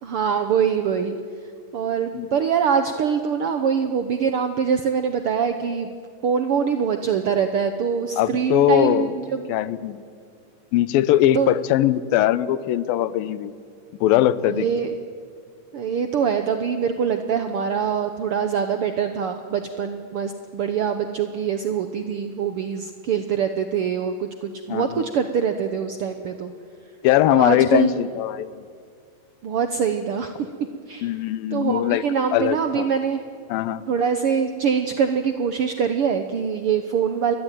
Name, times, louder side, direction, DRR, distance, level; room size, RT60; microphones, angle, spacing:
voice 1, 0.0-1.2 1.7-5.9 6.2-9.5 11.3-11.5 14.5-14.9 15.7-26.5 27.3-27.9 29.4-30.3 30.9-31.1 31.5-33.2 33.9-37.3, right 7 dB, 80° right, 7 dB, 1.2 m, -24 dB
voice 2, 8.2-9.1 9.5-10.0 10.7-13.5 14.0-14.7 24.7-25.0 27.0-28.5 31.0-32.0 32.3-32.9 33.5-33.8, left 13 dB, 85° left, 16 dB, 2.6 m, -20 dB
28.5 x 22.5 x 9.2 m, 2.2 s
omnidirectional pair, 4.0 m